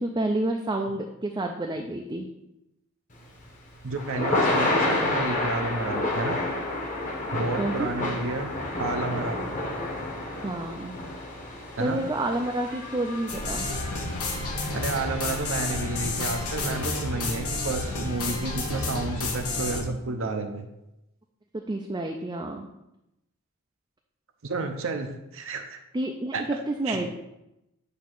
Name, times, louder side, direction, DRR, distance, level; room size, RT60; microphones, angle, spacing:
voice 1, 0.0-2.3 7.6-7.9 10.4-11.0 11.8-13.7 21.5-22.7 25.9-27.2, right 1 dB, 20° right, 2 dB, 0.4 m, -29 dB
Thunder / Rain, 3.2-17.4, left 2 dB, 35° left, 1.2 m, -31 dB
voice 2, 3.8-6.4 7.3-8.5 8.8-9.4 11.8-12.0 14.7-20.7 24.4-25.8 26.3-26.4 26.9-27.1, right 3 dB, 60° right, 5 dB, 0.6 m, -31 dB
sound 1, 13.3-19.8, left 2 dB, 80° left, 1.3 m, -30 dB
8.1 x 2.8 x 6.0 m, 0.89 s
head